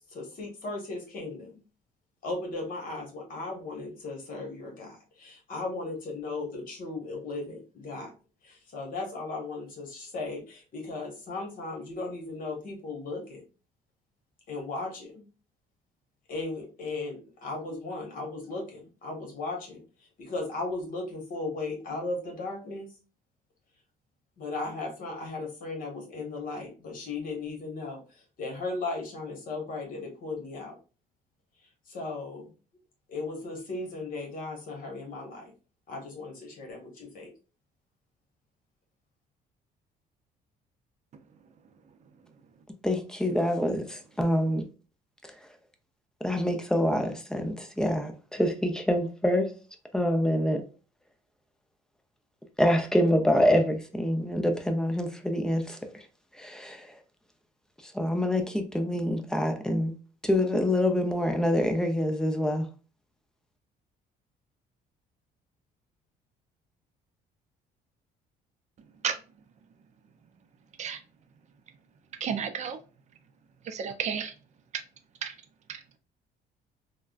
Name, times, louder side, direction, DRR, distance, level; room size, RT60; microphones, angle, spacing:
voice 1, 0.1-1.6 2.2-8.1 8.4-13.4 14.5-15.2 16.3-19.8 20.2-22.9 24.4-30.7 31.9-32.5 33.1-35.5 35.9-37.3, left 3 dB, 55° left, 1.3 m, -36 dB
voice 2, 42.8-44.7 45.2-45.3 46.2-49.5 49.9-50.6 52.6-56.0 56.3-56.9 57.8-59.9 60.2-62.7, left 1 dB, 5° left, 0.5 m, -26 dB
voice 3, 72.2-72.8 73.6-74.3 75.2-75.3, right 7 dB, 45° right, 0.5 m, -31 dB
3.4 x 2.2 x 2.4 m
cardioid pair, 110°, 17 cm